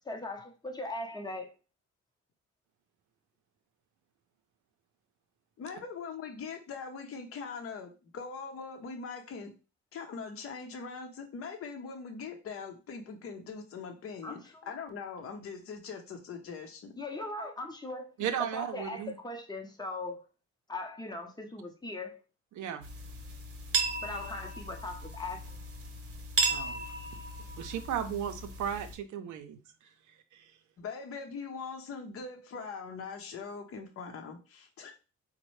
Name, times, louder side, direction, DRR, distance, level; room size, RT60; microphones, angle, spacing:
voice 1, 0.1-1.5 14.2-14.4 17.0-18.1 18.4-20.3 20.7-22.2 24.0-25.6, left 2 dB, 15° left, 0.7 m, -39 dB
voice 2, 5.6-9.5 9.9-14.4 14.7-16.9 30.8-34.9, left 5 dB, 50° left, 0.7 m, -41 dB
voice 3, 18.2-19.1 22.5-22.8 26.5-26.8 27.6-29.6 30.3-30.5, right 9 dB, 75° right, 0.6 m, -35 dB
sound 1, 22.8-28.9, right 3 dB, 50° right, 0.9 m, -35 dB
4.1 x 2.1 x 3.1 m
cardioid pair, 90°, 30 cm